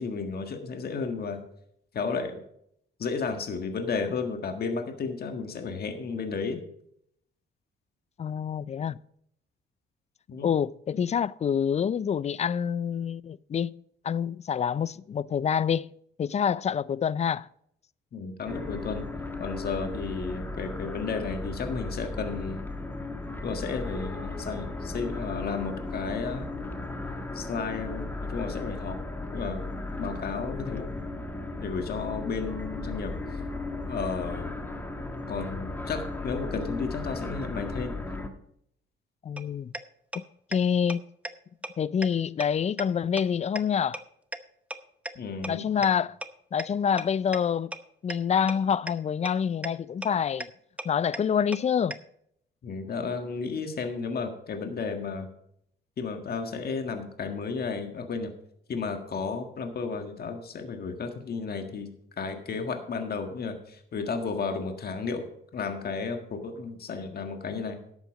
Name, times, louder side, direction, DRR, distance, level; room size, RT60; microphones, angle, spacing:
voice 1, 0.0-1.4 1.9-2.4 3.0-6.6 10.3-10.5 10.9-11.0 18.1-19.1 19.4-22.6 23.4-26.5 27.3-29.0 29.3-29.7 30.0-30.9 31.6-33.1 33.9-34.5 35.3-38.0 45.2-45.6 52.6-55.3 56.0-58.3 58.7-65.3 65.5-67.8, left 5 dB, 50° left, 1.7 m, -33 dB
voice 2, 8.2-9.0 10.4-13.8 14.0-15.9 16.2-17.5 30.5-30.9 39.2-39.7 40.1-40.2 40.5-41.0 41.8-44.0 45.5-46.2 46.5-47.7 48.0-50.5 50.8-52.0, left 7 dB, 35° left, 0.4 m, -27 dB
sound 1, 18.5-38.3, left 2 dB, 10° left, 1.4 m, -36 dB
sound 2, 39.4-39.5 39.7-39.8 40.1-40.2 40.5-40.6 40.9-41.0 41.2-41.3 41.6-41.7 42.0-42.1 42.4-42.5 42.8-42.9 43.2-43.3 43.6-43.7 43.9-44.0 44.3-44.4 44.7-44.8 45.1-45.2 45.4-45.5 45.8-45.9 46.2-46.3 46.6-46.7 47.0-47.1 47.3-47.4 47.7-47.8 48.1-48.2 48.5-48.6 48.9-49.0 49.2-49.3 49.6-49.7 50.0-50.1 50.4-50.5 50.8-50.9 51.1-51.2 51.5-51.6 51.9-52.0, right 1 dB, 5° right, 0.8 m, -33 dB
11.5 x 8.2 x 5.0 m
cardioid pair, 90°, 20 cm